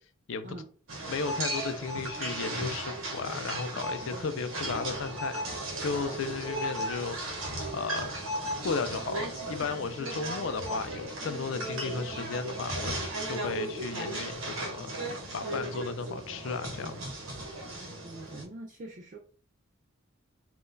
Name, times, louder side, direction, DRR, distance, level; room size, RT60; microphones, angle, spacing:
sound 1, 0.9-18.4, right 1 dB, 75° right, 0.9 m, -36 dB
voice 1, 1.1-5.4 5.8-7.4 7.7-8.2 8.6-12.9 13.2-14.9 15.3-17.0, left 5 dB, 65° left, 0.4 m, -34 dB
voice 2, 18.0-19.2, right 1 dB, 40° right, 0.4 m, -43 dB
3.6 x 2.3 x 2.6 m
head